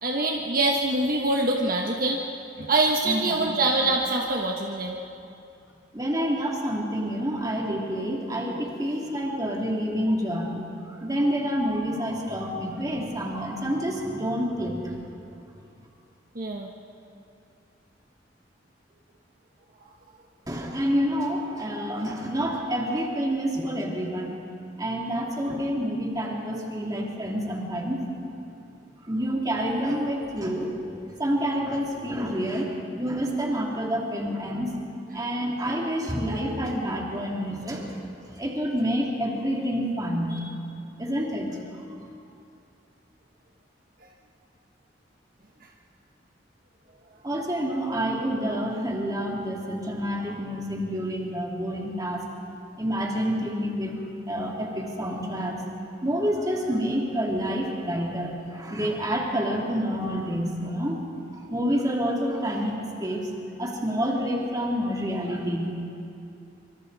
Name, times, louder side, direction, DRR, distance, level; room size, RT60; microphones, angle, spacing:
voice 1, 0.0-2.2 2.6-5.0 16.3-16.7, right 2 dB, 50° right, 0 dB, 1.3 m, -24 dB
voice 2, 3.0-3.5 5.9-14.9 20.5-24.3 24.8-28.0 29.0-34.8 35.1-38.0 38.3-40.5 41.0-41.6 47.2-52.2 52.8-53.9 54.3-55.6 56.0-61.0 61.5-63.3 63.6-66.0, equal, 20° right, -2 dB, 2.8 m, -28 dB
25.5 x 24.5 x 4.1 m, 2.6 s
head